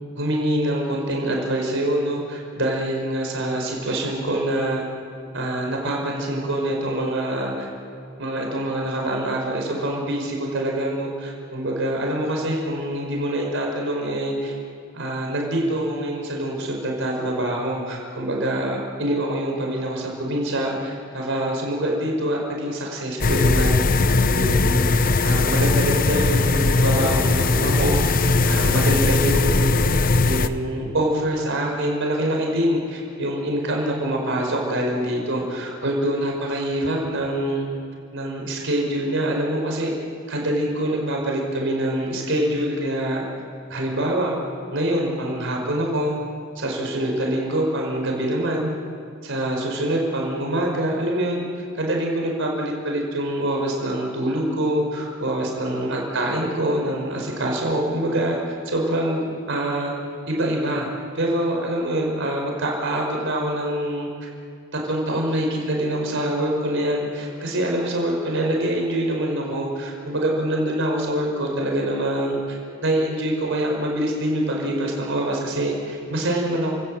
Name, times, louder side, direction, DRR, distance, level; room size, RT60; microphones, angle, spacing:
voice 1, 0.2-4.8 5.3-7.7 8.2-14.5 14.9-23.8 24.2-24.9 25.2-28.0 28.5-29.7 30.2-37.7 38.1-39.9 40.3-43.2 43.7-44.4 44.7-46.2 46.6-48.7 49.2-51.5 51.8-58.4 58.7-59.9 60.3-60.9 61.1-64.1 64.7-72.6 72.8-76.7, right 1 dB, 65° right, 0 dB, 5.2 m, -25 dB
sound 1, 23.2-30.5, left 3 dB, 45° left, 0.8 m, -19 dB
30.0 x 18.0 x 7.7 m, 2.3 s
head